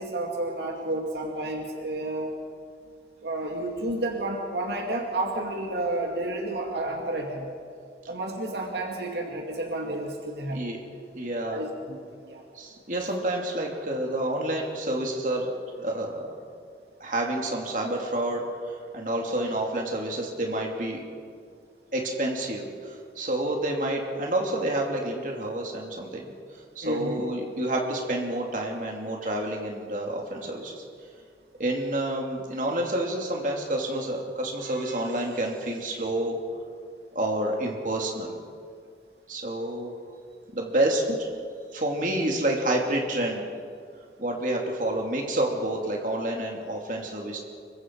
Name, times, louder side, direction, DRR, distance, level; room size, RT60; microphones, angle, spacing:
voice 1, 0.0-2.4 3.2-7.5 8.1-10.7 11.5-12.4 13.0-13.1 26.8-27.2, right 1 dB, 75° right, 1 dB, 2.3 m, -31 dB
voice 2, 11.1-11.6 12.5-15.5 15.8-16.2 17.0-21.0 21.9-26.3 26.7-30.8 31.6-36.4 37.1-38.3 39.3-39.9 40.5-41.1 41.7-43.5 44.2-47.4, right 1 dB, 45° right, 0 dB, 2.9 m, -29 dB
26.0 x 23.5 x 4.8 m, 2.2 s
head